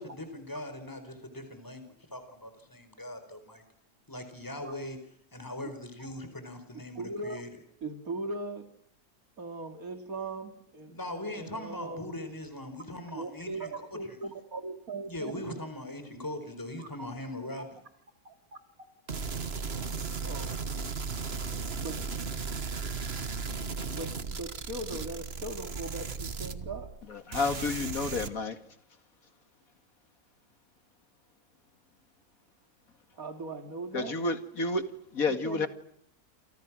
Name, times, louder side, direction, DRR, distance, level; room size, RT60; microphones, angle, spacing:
voice 1, 0.0-1.8 2.1-3.6 4.1-5.0 5.3-7.5 10.9-13.7 15.1-17.8, left 1 dB, 10° left, 8 dB, 4.8 m, -40 dB
voice 2, 6.9-7.5 7.8-8.7 9.4-12.2 13.1-15.3 16.8-16.9 18.2-18.3 20.2-20.6 21.8-23.2 23.5-26.9 33.1-34.2 35.3-35.7, right 2 dB, 65° right, 6 dB, 3.0 m, -40 dB
sound 1, 19.1-27.0 27.3-28.3, right 4 dB, 45° right, 1.6 m, -36 dB
voice 3, 27.3-28.6 33.9-34.8 35.1-35.7, left 3 dB, 65° left, 9 dB, 2.6 m, -30 dB
29.0 x 28.5 x 6.3 m, 0.71 s
omnidirectional pair, 1.6 m